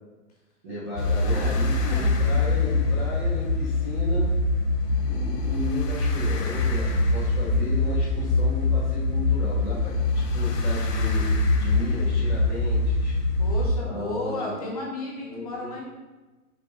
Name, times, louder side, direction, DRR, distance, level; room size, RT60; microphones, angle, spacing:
voice 1, 0.6-4.3 5.0-11.2 11.5-13.1 13.8-14.6 15.2-15.8, left 1 dB, 10° right, -11 dB, 0.7 m, -34 dB
sound 1, 1.0-13.7, left 2 dB, 85° left, 1.2 m, -24 dB
voice 2, 1.2-2.2 13.4-15.8, left 2 dB, 25° left, -2 dB, 0.9 m, -34 dB
6.5 x 5.9 x 3.2 m, 1.2 s
hypercardioid pair, 170°, 46 cm